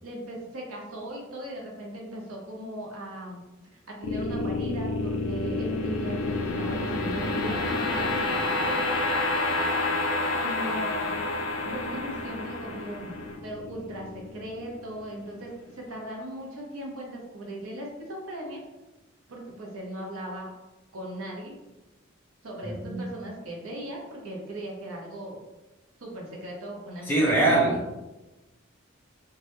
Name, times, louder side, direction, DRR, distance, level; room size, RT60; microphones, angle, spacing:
voice 1, 0.0-3.4 3.7-9.7 10.3-11.2 11.6-18.6 19.3-20.5 20.9-21.5 22.4-25.4 26.0-27.6, right 1 dB, 85° right, -1 dB, 0.6 m, -38 dB
sound 1, 4.0-15.2, left 2 dB, 85° left, 0.4 m, -29 dB
voice 2, 22.6-23.1 27.1-27.9, right 2 dB, 10° left, -5 dB, 0.6 m, -23 dB
2.3 x 2.0 x 2.9 m, 1.1 s
head